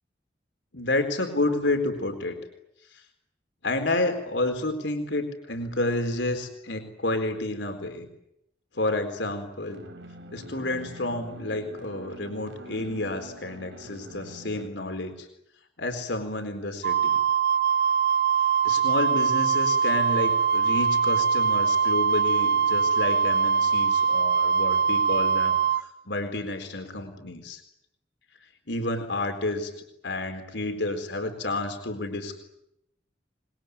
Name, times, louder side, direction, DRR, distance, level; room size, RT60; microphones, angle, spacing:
voice 1, 0.7-2.4 2.9-3.0 3.6-8.1 8.7-9.8 10.3-15.3 15.8-17.2 18.6-27.6 28.7-29.7 30.0-32.4, left 2 dB, 80° left, 6 dB, 4.2 m, -30 dB
sound 1, 9.7-14.7, equal, 85° right, 3.2 m, -44 dB
Wind instrument woodwind instrument, 16.8-25.8, right 6 dB, 65° right, 1.0 m, -22 dB
26.0 x 22.0 x 9.7 m, 0.78 s
head